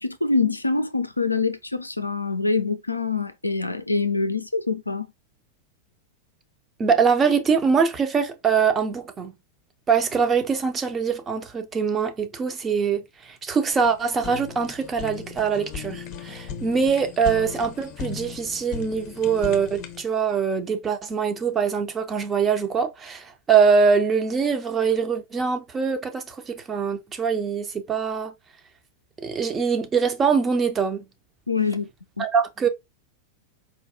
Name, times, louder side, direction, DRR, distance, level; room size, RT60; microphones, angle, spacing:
voice 1, 0.0-5.1 31.5-31.9 32.2-32.3, left 4 dB, 85° left, 0.4 m, -25 dB
voice 2, 6.8-9.3 9.9-28.3 29.2-31.0 32.2-32.7, right 6 dB, 20° right, 0.6 m, -23 dB
Fire, 13.7-20.0, left 6 dB, 40° left, 0.6 m, -37 dB
4.4 x 2.3 x 2.5 m
figure-of-eight pair, 90°, 0 cm